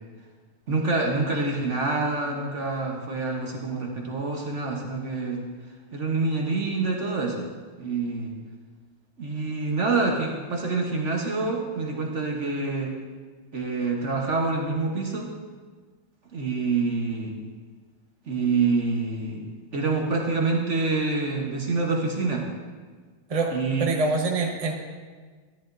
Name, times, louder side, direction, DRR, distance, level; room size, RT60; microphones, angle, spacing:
voice 1, 0.7-5.4 5.9-7.4 7.8-8.4 9.2-13.0 13.5-15.3 16.3-17.4 18.3-19.4 19.7-22.5 23.5-23.9, right 3 dB, 45° right, 0 dB, 1.2 m, -26 dB
voice 2, 23.8-24.7, right 3 dB, 25° right, 0 dB, 0.8 m, -24 dB
13.0 x 11.0 x 2.6 m, 1.5 s
omnidirectional pair, 2.0 m